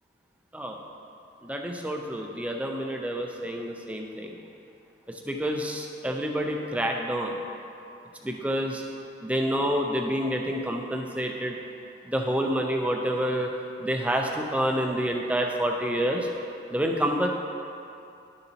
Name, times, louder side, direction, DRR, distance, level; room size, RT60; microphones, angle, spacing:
voice 1, 1.4-4.4 5.1-7.4 8.2-8.8 9.2-11.6 12.0-13.5 13.8-16.3 16.7-17.3, equal, 5° right, 1 dB, 0.5 m, -28 dB
11.5 x 6.8 x 2.9 m, 2.7 s
head